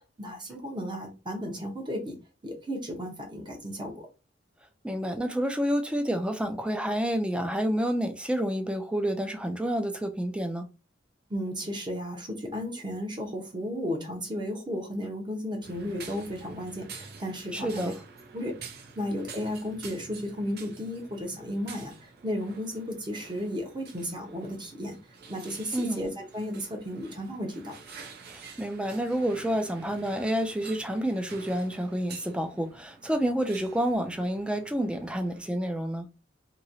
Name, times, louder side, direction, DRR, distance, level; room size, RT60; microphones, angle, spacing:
voice 1, 0.2-2.2 2.4-4.1 11.3-17.9 18.3-18.5 19.0-25.0 25.3-27.7, equal, 25° right, 0.9 m, -34 dB
voice 2, 4.8-10.7 17.5-17.9 25.7-26.0 28.3-36.1, equal, 5° right, 0.4 m, -29 dB
sound 1, 15.6-35.5, right 5 dB, 60° right, 0.7 m, -48 dB
3.0 x 2.8 x 2.6 m
head